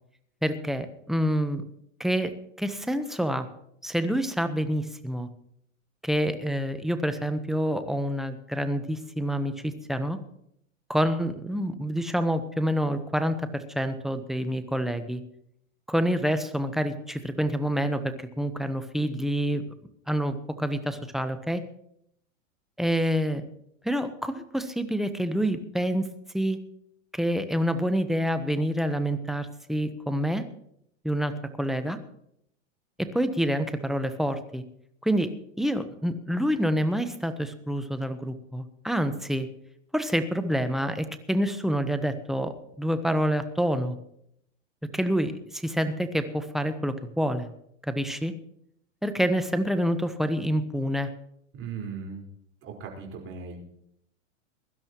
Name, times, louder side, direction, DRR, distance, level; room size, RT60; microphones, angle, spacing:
voice 1, 0.4-1.6 2.0-2.3 2.6-3.5 3.8-5.3 6.0-10.2 10.9-15.2 15.9-19.7 20.1-21.6 22.8-23.4 23.8-26.1 26.3-26.6 27.1-30.5 31.0-32.0 33.0-34.6 35.0-35.3 35.6-39.5 39.9-44.0 44.9-47.5 47.8-48.3 49.0-51.1, equal, ahead, 9 dB, 1.0 m, -27 dB
voice 2, 51.5-52.3 52.6-53.6, right 5 dB, 35° right, 1 dB, 4.8 m, -38 dB
22.5 x 12.0 x 3.0 m, 0.73 s
hypercardioid pair, 115°, 38 cm